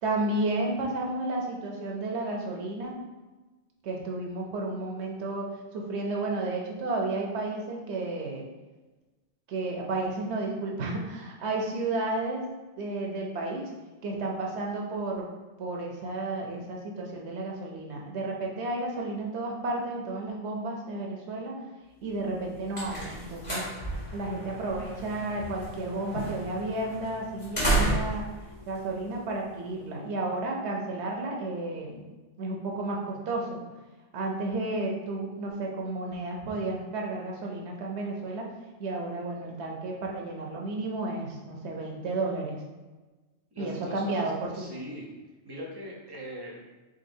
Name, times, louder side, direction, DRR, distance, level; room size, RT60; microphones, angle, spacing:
voice 1, 0.0-3.0 3.8-5.5 5.7-8.4 9.5-12.4 12.8-13.7 14.0-15.3 15.6-21.6 22.0-23.7 24.1-28.2 28.7-32.1 32.4-33.6 34.1-38.5 38.8-42.6 43.6-44.6, right 2 dB, 65° right, 0 dB, 1.0 m, -32 dB
sound 1, 22.2-29.7, right 1 dB, 25° left, 1.4 m, -33 dB
voice 2, 43.5-45.1 45.4-46.6, equal, 25° right, -3 dB, 0.6 m, -41 dB
3.9 x 3.6 x 2.6 m, 1.2 s
omnidirectional pair, 1.3 m